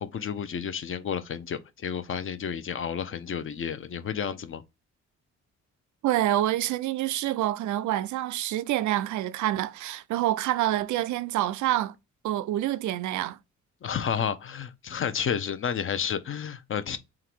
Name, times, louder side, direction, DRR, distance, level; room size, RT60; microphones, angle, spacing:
voice 1, 0.0-4.6 13.8-17.0, left 7 dB, 45° left, 0.7 m, -31 dB
voice 2, 6.0-11.9 12.2-13.4, right 14 dB, 75° right, 0.5 m, -27 dB
3.7 x 2.9 x 4.5 m
cardioid pair, 90°, 30 cm